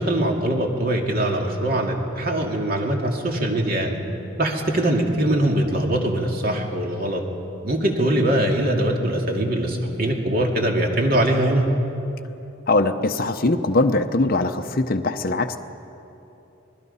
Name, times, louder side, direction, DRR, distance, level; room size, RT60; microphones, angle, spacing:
voice 1, 0.0-4.0 4.4-7.2 7.6-11.7, right 1 dB, 45° right, 1 dB, 2.4 m, -22 dB
voice 2, 12.7-15.6, left 2 dB, 45° left, 6 dB, 0.7 m, -21 dB
26.5 x 20.5 x 5.6 m, 2.9 s
head